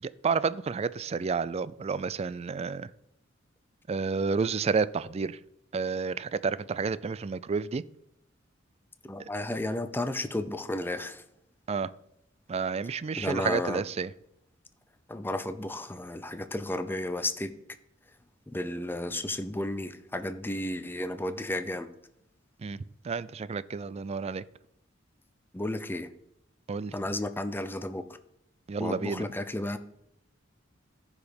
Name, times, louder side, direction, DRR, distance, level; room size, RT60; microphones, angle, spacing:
voice 1, 0.0-2.9 3.9-5.4 5.7-7.8 11.7-11.9 12.5-14.1 22.6-22.8 23.0-24.4 26.7-26.9 28.7-29.2, right 5 dB, 30° right, 17 dB, 0.3 m, -30 dB
voice 2, 9.0-11.2 13.2-13.8 15.1-17.5 18.1-18.2 18.5-21.9 25.5-26.1 26.9-28.2 28.8-29.8, left 1 dB, 10° left, 10 dB, 0.6 m, -33 dB
14.5 x 4.9 x 5.2 m, 0.77 s
head